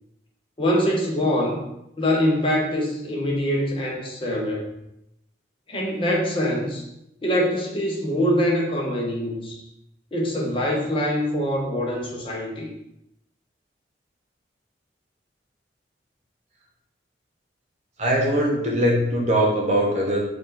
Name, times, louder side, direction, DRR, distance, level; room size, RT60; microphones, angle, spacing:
voice 1, 0.6-1.6 2.0-4.7 5.7-6.9 7.2-9.6 10.1-12.7, equal, 30° left, -2 dB, 0.8 m, -24 dB
voice 2, 18.0-20.2, right 1 dB, 35° right, -2 dB, 1.0 m, -21 dB
4.6 x 2.5 x 3.9 m, 0.84 s
head